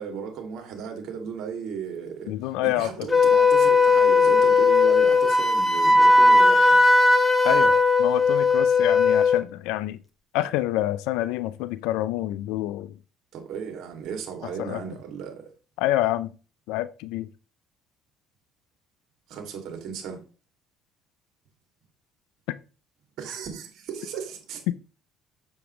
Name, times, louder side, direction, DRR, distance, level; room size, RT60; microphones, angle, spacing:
voice 1, 0.0-2.3 2.6-6.8 13.3-15.5 19.3-20.2 23.2-24.6, right 7 dB, 65° right, 2.5 m, -35 dB
voice 2, 2.3-3.1 7.4-10.0 10.3-13.0 14.6-14.8 15.8-16.3 16.7-17.3 24.7-24.8, left 15 dB, 85° left, 0.6 m, -27 dB
Wind instrument woodwind instrument, 3.1-9.4, left 3 dB, 15° left, 1.5 m, -18 dB
7.2 x 6.9 x 3.2 m
supercardioid pair, 80°, 0 cm